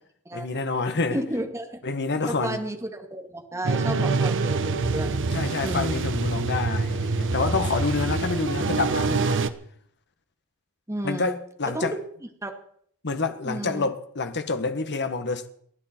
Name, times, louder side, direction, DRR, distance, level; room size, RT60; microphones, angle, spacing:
voice 1, 0.3-1.2 1.8-2.6 5.3-9.5 11.0-11.9 13.0-15.5, left 3 dB, 50° left, 1.4 m, -28 dB
voice 2, 1.1-1.8 2.4-5.1 5.6-6.1 10.9-11.4 11.6-12.0 12.4-12.5 13.5-13.9, right 1 dB, 15° right, 1.9 m, -32 dB
sound 1, 3.6-9.5, right 3 dB, 60° right, 1.0 m, -25 dB
29.5 x 11.0 x 4.5 m
head